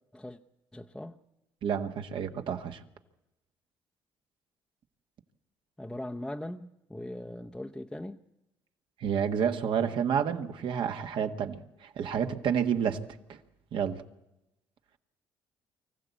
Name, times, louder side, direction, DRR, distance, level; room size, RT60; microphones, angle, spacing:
voice 1, 0.7-1.2 5.8-8.2, left 1 dB, 5° left, 0.8 m, -40 dB
voice 2, 1.6-2.8 9.0-13.0 13.3-13.4 13.7-14.0, right 7 dB, 60° right, 1.6 m, -29 dB
24.5 x 15.0 x 8.3 m
cardioid pair, 95°, 9 cm